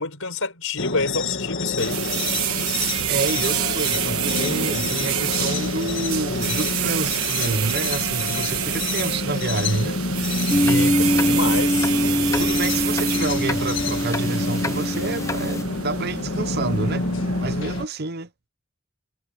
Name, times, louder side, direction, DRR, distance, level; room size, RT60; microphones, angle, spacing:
voice 1, 0.0-2.0 10.6-11.9, left 3 dB, 70° left, 4.7 m, -27 dB
sound 1, 0.8-17.9, left 3 dB, 55° left, 1.7 m, -28 dB
sound 2, 1.8-17.8, right 11 dB, 80° right, 1.3 m, -28 dB
voice 2, 3.1-10.0 12.4-17.1 17.4-18.3, right 3 dB, 45° right, 0.7 m, -28 dB
sound 3, 10.5-15.6, left 1 dB, 15° left, 0.6 m, -23 dB
head